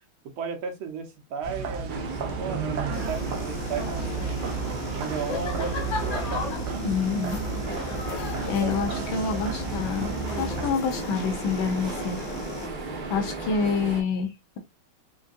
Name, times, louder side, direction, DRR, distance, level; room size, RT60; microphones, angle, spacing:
voice 1, 0.4-6.4 8.6-8.7, right 6 dB, 80° right, 1.8 m, -35 dB
sound 1, 1.4-10.7, right 5 dB, 65° right, 1.2 m, -33 dB
sound 2, 1.9-14.0, right 3 dB, 40° right, 0.7 m, -36 dB
sound 3, 2.9-12.7, left 5 dB, 55° left, 1.1 m, -36 dB
voice 2, 6.8-7.4 8.2-12.2 13.1-14.6, left 5 dB, 75° left, 1.6 m, -28 dB
5.0 x 2.7 x 2.4 m
omnidirectional pair, 2.3 m